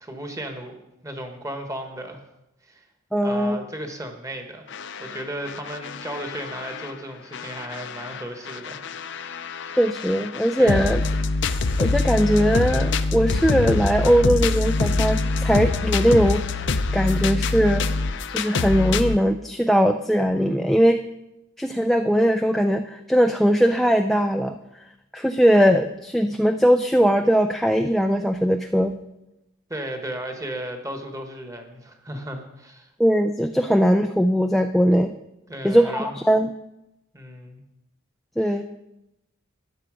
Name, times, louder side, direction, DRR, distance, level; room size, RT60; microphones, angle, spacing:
voice 1, 0.0-2.2 2.6-2.8 3.2-4.6 5.0-8.8 9.1-9.8 10.6-10.9 29.7-32.9 35.5-36.1 37.1-37.6 38.4-38.6, right 1 dB, 15° right, 5 dB, 1.3 m, -35 dB
voice 2, 3.1-3.6 9.7-11.0 11.8-17.9 18.3-21.0 21.6-24.6 25.1-28.9 33.0-35.1 35.6-36.5 38.4-38.6, equal, ahead, 5 dB, 0.3 m, -20 dB
sound 1, 4.7-6.9 7.3-19.2, left 3 dB, 55° left, 0.6 m, -25 dB
13.5 x 10.0 x 5.0 m, 0.91 s
head